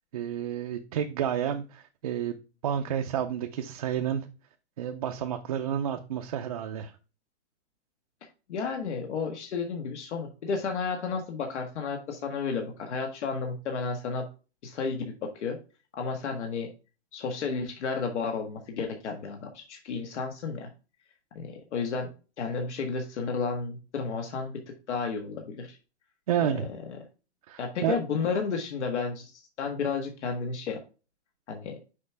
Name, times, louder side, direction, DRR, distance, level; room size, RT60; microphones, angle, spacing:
voice 1, 0.1-2.4 2.6-4.3 4.8-6.9 26.3-26.7 27.5-28.0, right 9 dB, 35° right, 4 dB, 0.4 m, -30 dB
voice 2, 8.5-14.3 14.6-15.6 16.0-16.7 17.1-20.7 21.3-22.1 22.4-24.6 24.9-25.8 26.4-27.0 27.6-29.3 29.6-30.8 31.5-31.8, left 5 dB, 80° left, 3 dB, 1.5 m, -32 dB
6.6 x 4.8 x 3.4 m, 0.33 s
hypercardioid pair, 175°, 34 cm